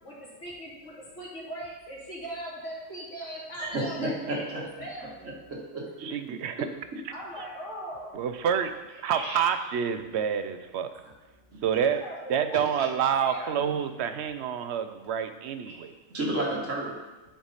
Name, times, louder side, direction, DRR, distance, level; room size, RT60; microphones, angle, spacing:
voice 1, 0.0-5.4 7.1-8.3 12.0-12.4 13.2-13.7, right 1 dB, 80° left, -6 dB, 2.7 m, -40 dB
voice 2, 3.6-4.6 5.5-5.9 9.1-9.4 11.5-11.6 12.8-12.9 13.6-13.7 15.7-15.8 16.1-17.0, right 1 dB, 85° right, -4 dB, 2.1 m, -31 dB
voice 3, 6.0-6.7 8.1-8.7 9.0-10.9 11.6-12.0 12.3-15.9, right 8 dB, 70° right, 9 dB, 0.8 m, -28 dB
10.0 x 4.6 x 4.1 m, 1.1 s
omnidirectional pair, 1.3 m